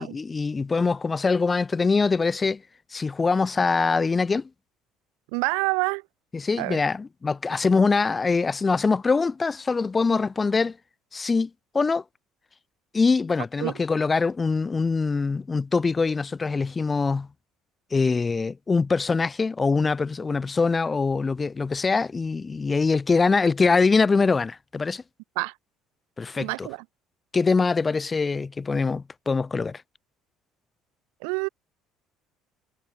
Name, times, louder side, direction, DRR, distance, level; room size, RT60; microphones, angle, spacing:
voice 1, 0.0-2.6 2.9-4.5 6.3-10.8 11.1-12.0 12.9-17.3 17.9-25.0 26.2-26.7 27.3-29.8, left 4 dB, 25° left, 1.7 m, -23 dB
voice 2, 5.3-6.0 6.6-6.8 13.6-13.7 25.4-25.5 26.4-26.8 31.2-31.5, right 40 dB or more, 90° right, 0.7 m, -27 dB
cardioid pair, 105°, 0 cm